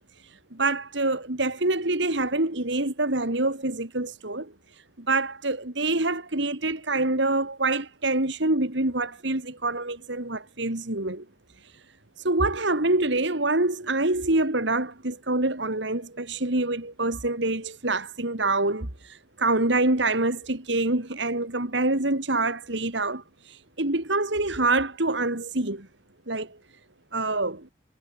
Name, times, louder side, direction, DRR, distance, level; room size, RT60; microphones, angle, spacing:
voice 1, 0.5-4.5 5.0-11.2 12.2-25.9 26.3-26.6 27.1-27.7, right 2 dB, 60° right, 2.5 m, -26 dB
head